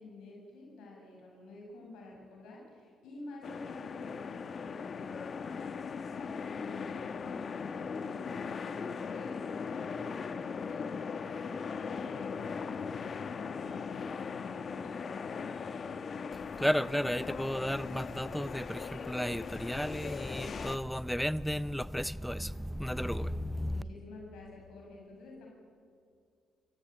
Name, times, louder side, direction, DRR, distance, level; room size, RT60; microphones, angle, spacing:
voice 1, 0.0-5.8 6.2-15.6 23.0-25.5, left 2 dB, 85° left, 7.6 m, -50 dB
sound 1, 3.4-20.8, left 5 dB, 50° left, 1.2 m, -39 dB
voice 2, 16.3-23.8, equal, ahead, 0.7 m, -33 dB
29.0 x 16.5 x 9.2 m
cardioid pair, 90°, 0 cm